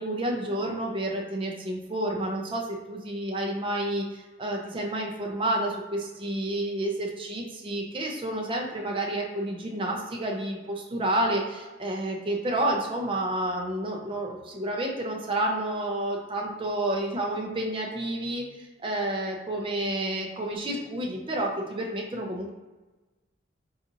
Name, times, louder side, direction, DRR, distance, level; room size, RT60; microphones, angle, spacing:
voice 1, 0.0-22.5, right 1 dB, 25° right, 0 dB, 0.5 m, -30 dB
3.9 x 2.4 x 2.8 m, 1.2 s
head